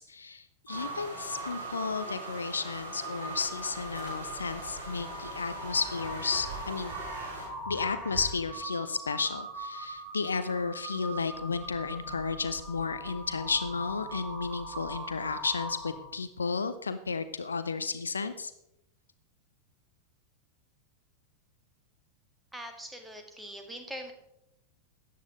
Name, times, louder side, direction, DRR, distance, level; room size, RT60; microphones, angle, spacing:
voice 1, 0.0-6.9 7.7-18.5, left 5 dB, 75° left, 12 dB, 0.6 m, -33 dB
Crow, 0.7-16.2, right 2 dB, 45° right, 4.2 m, -41 dB
sound 1, 0.7-7.5, right 1 dB, 75° right, 4.6 m, -42 dB
voice 2, 22.5-24.1, equal, 5° right, 4 dB, 1.7 m, -42 dB
13.5 x 9.5 x 3.8 m, 0.83 s
figure-of-eight pair, 90°, 0 cm